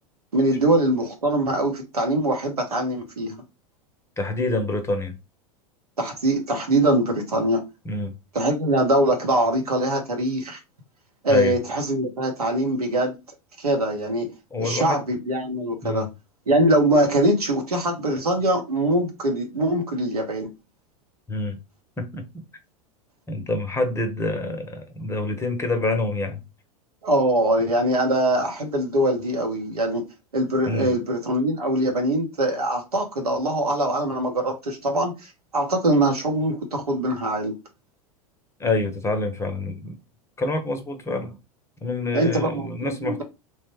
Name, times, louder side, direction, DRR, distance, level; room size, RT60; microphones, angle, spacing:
voice 1, 0.3-3.3 6.0-7.6 8.3-10.6 11.2-13.2 13.6-14.3 14.6-16.1 16.5-20.5 27.0-30.0 30.3-37.5 42.1-43.2, right 1 dB, 90° right, 0.9 m, -23 dB
voice 2, 4.2-5.2 7.8-8.1 11.3-11.5 14.5-15.0 15.8-16.1 21.3-21.6 22.0-22.4 23.3-26.4 30.7-30.9 38.6-39.9 40.4-41.4 41.8-43.2, left 2 dB, 15° left, 0.6 m, -26 dB
3.1 x 2.2 x 3.0 m
hypercardioid pair, 90°, 19 cm